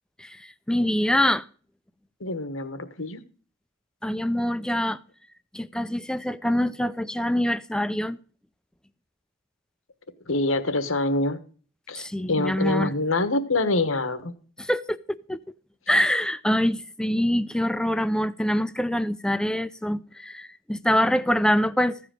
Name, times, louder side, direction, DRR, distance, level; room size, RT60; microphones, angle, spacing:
voice 1, 0.2-1.5 4.0-5.0 5.5-8.2 11.9-12.9 14.6-15.4 15.9-22.0, left 1 dB, 5° left, 0.5 m, -25 dB
voice 2, 2.2-3.2 10.3-11.4 11.9-14.3, left 2 dB, 90° left, 1.3 m, -25 dB
15.0 x 4.9 x 8.9 m
head